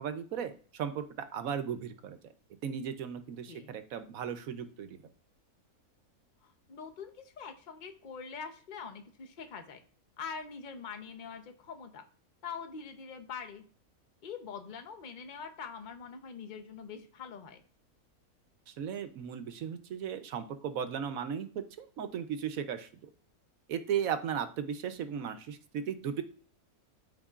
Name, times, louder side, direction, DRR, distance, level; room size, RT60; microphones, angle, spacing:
voice 1, 0.0-2.2 2.6-5.0 18.7-23.1 23.7-26.2, right 8 dB, 65° right, 10 dB, 1.1 m, -36 dB
voice 2, 6.4-9.8 10.2-12.1 12.4-13.6 14.2-17.6, left 6 dB, 40° left, 7 dB, 0.8 m, -44 dB
12.5 x 4.3 x 2.4 m, 0.44 s
omnidirectional pair, 1.6 m